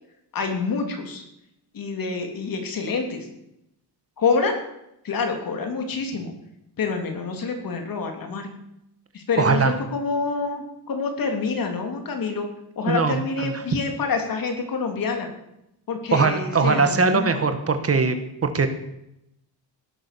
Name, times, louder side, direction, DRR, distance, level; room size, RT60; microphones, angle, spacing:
voice 1, 0.3-1.2 1.7-3.2 4.2-4.6 5.0-6.3 6.8-8.5 9.1-12.4 12.8-15.3 15.9-17.3, left 4 dB, 55° left, 4 dB, 3.2 m, -27 dB
voice 2, 9.4-9.7 12.9-13.5 16.1-18.2 18.5-18.7, right 4 dB, 35° right, 8 dB, 1.7 m, -21 dB
16.5 x 12.0 x 6.9 m, 0.83 s
cardioid pair, 155°, 42 cm